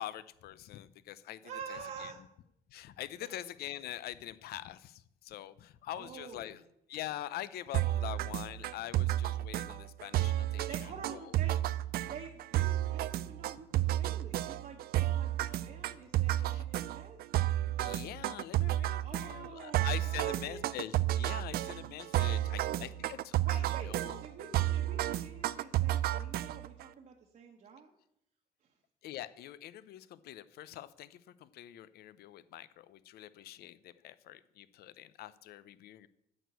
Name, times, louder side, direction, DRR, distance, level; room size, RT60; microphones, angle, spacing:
voice 1, 0.0-1.4 1.7-2.1 2.7-6.6 6.9-11.3 16.5-16.6 17.8-23.6 23.9-24.2 29.0-36.1, left 13 dB, 70° left, 16 dB, 0.6 m, -44 dB
voice 2, 1.4-2.2 3.2-3.5 5.9-6.6 10.6-11.6 12.1-17.2 19.0-19.8 20.1-20.6 22.1-23.0 23.4-23.9 24.2-27.9, right 6 dB, 50° right, 0 dB, 1.3 m, -48 dB
sound 1, 7.7-26.8, right 14 dB, 65° right, 0.5 m, -32 dB
9.1 x 6.2 x 8.2 m, 0.78 s
cardioid pair, 110°, 17 cm